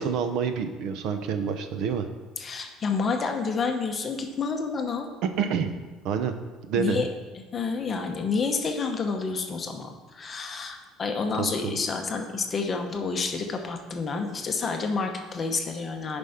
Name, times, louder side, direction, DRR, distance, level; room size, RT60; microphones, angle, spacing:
voice 1, 0.0-2.1 5.2-5.7 6.0-6.3 6.6-7.1 11.4-11.8, right 6 dB, 55° right, 8 dB, 0.7 m, -28 dB
voice 2, 2.4-5.1 6.8-7.1 7.5-16.2, left 4 dB, 20° left, 4 dB, 0.8 m, -29 dB
10.0 x 5.3 x 5.8 m, 1.3 s
cardioid pair, 180°, 0 cm